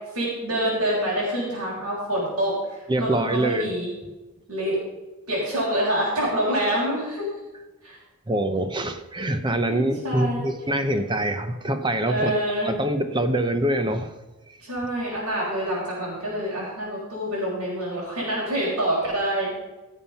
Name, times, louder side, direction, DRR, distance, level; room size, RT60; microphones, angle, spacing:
voice 1, 0.1-3.9 4.5-4.8 5.3-7.3 7.8-8.0 9.7-10.4 12.0-12.7 14.6-19.5, right 1 dB, 85° right, -7 dB, 5.2 m, -26 dB
voice 2, 2.9-3.7 8.3-12.3 12.6-14.1 14.5-14.6, right 1 dB, 20° right, 8 dB, 0.8 m, -24 dB
17.0 x 7.3 x 5.7 m, 1.1 s
head